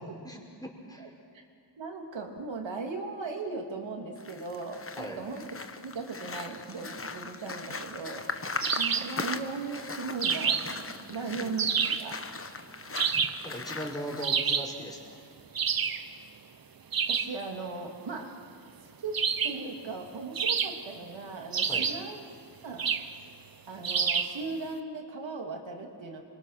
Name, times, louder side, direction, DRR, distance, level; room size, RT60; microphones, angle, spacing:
voice 1, 0.2-1.1 5.0-5.2 11.1-11.6 13.4-15.2 21.7-21.9, right 1 dB, 10° left, -1 dB, 5.3 m, -39 dB
voice 2, 1.8-5.4 5.8-8.3 8.8-12.2 17.1-18.3 19.0-19.2 19.4-22.2 22.6-22.9 23.7-26.2, right 4 dB, 75° right, 2 dB, 3.3 m, -38 dB
sound 1, 4.2-14.3, left 4 dB, 30° left, 1.2 m, -39 dB
sound 2, 8.6-9.2 10.2-10.8 11.6-12.1 13.0-13.5 14.2-14.8 15.5-16.1 16.9-17.4 19.1-19.7 20.4-21.0 21.5-22.1 22.8-23.1 23.8-24.4, right 6 dB, 50° right, 1.1 m, -28 dB
28.0 x 24.0 x 6.1 m, 2.4 s
wide cardioid pair, 100°, 45 cm